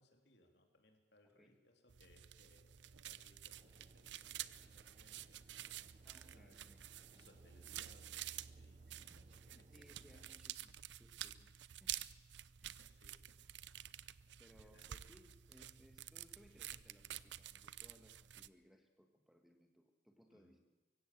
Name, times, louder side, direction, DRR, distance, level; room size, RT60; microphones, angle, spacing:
voice 1, 0.0-10.3 12.7-13.4 13.7-13.9 14.3-14.9 20.3-20.6, left 1 dB, 65° left, 3 dB, 3.3 m, -70 dB
voice 2, 1.2-1.6 6.0-7.1 8.9-10.7 11.0-11.5 11.8-12.1 12.6-12.9 14.1-20.6, equal, ahead, 5 dB, 1.5 m, -67 dB
sound 1, 1.9-18.5, right 12 dB, 75° right, 0.6 m, -50 dB
sound 2, 3.6-10.4, right 1 dB, 30° right, 0.7 m, -69 dB
24.0 x 16.0 x 7.7 m, 1.2 s
head